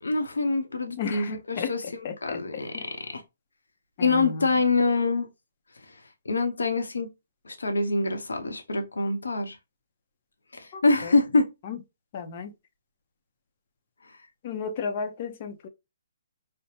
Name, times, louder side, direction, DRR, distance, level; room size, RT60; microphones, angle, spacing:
voice 1, 0.0-1.8 2.2-2.7 3.1-3.2 4.0-5.3 5.9-6.0 6.2-7.1 7.4-9.6 10.5-11.5 14.1-14.2, left 3 dB, 90° left, 0.9 m, -25 dB
voice 2, 1.0-1.7 2.0-2.9 4.0-4.5 10.7-11.1 11.6-11.8 12.1-12.5 14.4-15.7, left 5 dB, 45° left, 0.7 m, -34 dB
5.1 x 2.2 x 2.8 m
hypercardioid pair, 145°, 0 cm